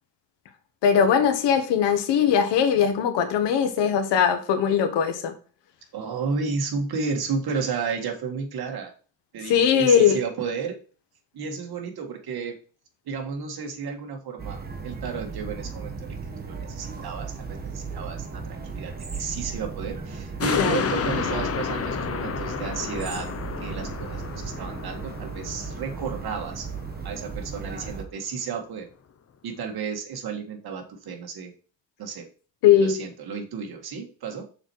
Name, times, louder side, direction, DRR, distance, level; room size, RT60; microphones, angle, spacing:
voice 1, 0.8-5.3 9.5-10.2 20.6-20.8 32.6-32.9, left 8 dB, 85° left, 1.4 m, -20 dB
voice 2, 5.9-8.9 9.3-10.7 11.3-12.5 13.1-26.7 27.0-28.9 29.4-31.5 32.0-32.3 32.8-34.4, right 5 dB, 60° right, 1.9 m, -32 dB
sound 1, 14.4-28.0, right 5 dB, 20° right, 1.2 m, -36 dB
sound 2, 20.4-27.1 27.5-27.6, left 7 dB, 35° left, 0.7 m, -31 dB
6.5 x 4.4 x 4.7 m
cardioid pair, 105°, 42 cm